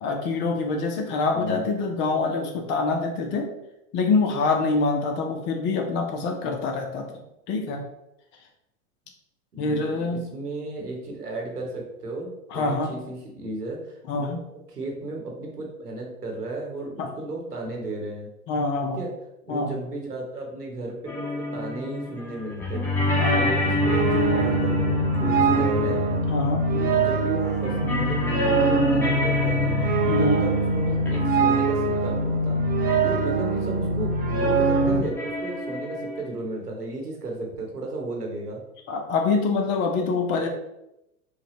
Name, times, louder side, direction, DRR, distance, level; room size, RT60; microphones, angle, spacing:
voice 1, 0.0-3.5 3.9-7.1 7.5-7.8 9.6-10.2 12.5-12.9 14.1-14.4 17.0-17.1 18.5-19.0 19.5-19.7 23.2-23.5 26.3-26.6 30.1-30.4 38.9-40.5, left 3 dB, 30° left, 4 dB, 0.4 m, -25 dB
voice 2, 1.3-1.6 9.5-14.4 14.7-18.3 19.0-19.1 19.5-22.9 23.3-26.0 26.7-29.8 30.2-32.6 32.9-38.6, right 2 dB, 90° right, 0 dB, 1.0 m, -34 dB
sound 1, 21.1-27.1 27.4-31.5 32.9-33.0 33.2-33.3 34.7-36.3, left 2 dB, 5° left, 0.8 m, -29 dB
sound 2, 23.3-35.0, right 2 dB, 20° right, 0.5 m, -23 dB
5.0 x 2.2 x 2.9 m, 0.86 s
figure-of-eight pair, 90°, 45 cm